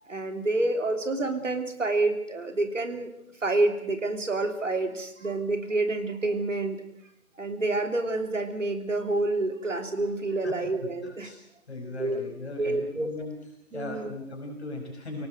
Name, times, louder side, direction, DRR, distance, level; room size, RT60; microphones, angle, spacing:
voice 1, 0.0-3.1 3.4-6.8 7.4-11.3 12.0-12.2 12.6-13.1 13.7-14.1, right 2 dB, 60° right, 6 dB, 3.3 m, -28 dB
voice 2, 11.0-11.4 11.7-13.4 13.7-15.3, left 2 dB, 50° left, 2 dB, 5.2 m, -38 dB
23.5 x 18.0 x 7.8 m, 0.74 s
figure-of-eight pair, 155°, 43 cm